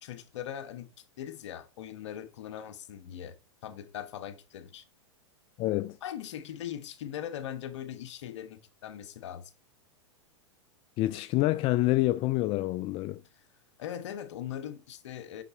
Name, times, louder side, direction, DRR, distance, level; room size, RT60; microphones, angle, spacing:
voice 1, 0.0-3.4 3.6-4.8 6.0-9.5 13.3-13.4 13.8-15.4, left 10 dB, 70° left, 1.2 m, -40 dB
voice 2, 5.6-6.0 11.0-13.2, left 17 dB, 40° left, 0.4 m, -27 dB
6.4 x 5.9 x 4.3 m
hypercardioid pair, 105°, 16 cm